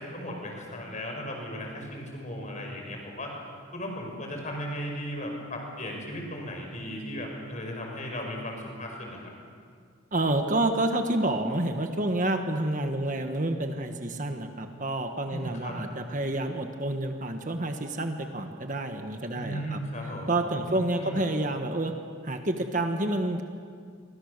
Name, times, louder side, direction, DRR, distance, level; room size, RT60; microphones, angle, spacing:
voice 1, 0.0-3.4 3.7-9.3 15.3-15.8 19.3-20.3 20.6-21.2, equal, 35° left, 1 dB, 5.7 m, -36 dB
voice 2, 10.1-19.8 20.3-21.9 22.2-23.4, right 1 dB, 35° right, 5 dB, 1.5 m, -29 dB
28.5 x 24.5 x 6.8 m, 2.1 s
head